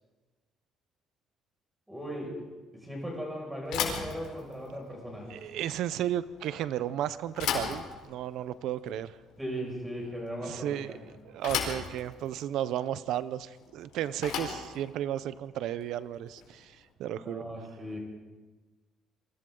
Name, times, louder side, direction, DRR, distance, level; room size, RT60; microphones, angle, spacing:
voice 1, 1.9-2.3 2.7-5.3 9.4-11.0 17.2-18.0, equal, 5° right, -1 dB, 6.2 m, -37 dB
Bicycle / Thump thud, 3.6-16.8, left 7 dB, 80° left, 4.5 m, -38 dB
voice 2, 5.3-9.1 10.4-17.4, right 11 dB, 65° right, 15 dB, 0.7 m, -34 dB
27.5 x 24.0 x 3.9 m, 1.2 s
cardioid pair, 175°, 0 cm